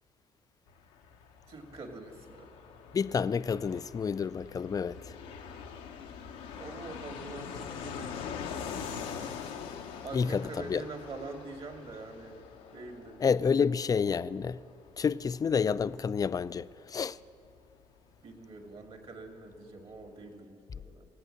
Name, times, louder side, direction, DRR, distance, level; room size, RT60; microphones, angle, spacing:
Fixed-wing aircraft airplane, 0.7-19.1 19.3-19.4 19.6-20.3, left 7 dB, 85° left, 0.8 m, -44 dB
voice 1, 1.5-2.5 6.6-9.0 10.0-12.4 12.7-13.2 18.2-21.1, right 3 dB, 50° right, 2.2 m, -45 dB
voice 2, 2.9-5.2 10.1-10.8 13.2-14.6 15.0-17.2, left 6 dB, 30° left, 0.4 m, -29 dB
18.0 x 8.3 x 6.3 m
supercardioid pair, 60°, 12 cm